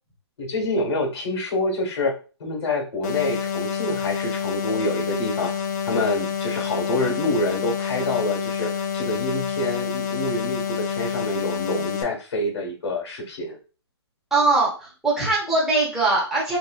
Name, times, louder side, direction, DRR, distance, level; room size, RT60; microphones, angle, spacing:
voice 1, 0.4-2.1 2.4-5.5 5.8-13.6, left 2 dB, 70° left, 1 dB, 1.5 m, -27 dB
sound 1, 3.0-12.0, left 7 dB, 40° left, 0.5 m, -28 dB
voice 2, 14.3-16.6, right 3 dB, 5° right, -7 dB, 1.1 m, -21 dB
3.1 x 2.6 x 2.3 m, 0.34 s
hypercardioid pair, 155°, 14 cm